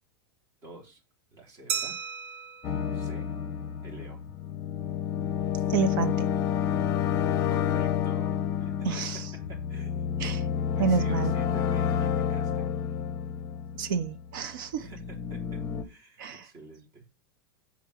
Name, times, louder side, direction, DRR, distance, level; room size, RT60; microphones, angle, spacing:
voice 1, 0.6-1.0 1.3-1.9 2.8-3.3 3.8-4.2 7.5-8.7 9.7-10.1 10.4-12.7 14.8-17.1, right 2 dB, 25° right, 3.2 m, -47 dB
Glass, 1.7-4.2, right 7 dB, 80° right, 1.6 m, -37 dB
sound 1, 2.6-14.3 14.7-15.8, left 8 dB, 30° left, 0.8 m, -29 dB
voice 2, 5.7-6.3 8.8-9.2 10.2-10.4 10.8-11.3 13.7-14.9 16.2-16.5, right 6 dB, 65° right, 1.2 m, -29 dB
7.0 x 4.5 x 6.4 m
supercardioid pair, 160°, 12 cm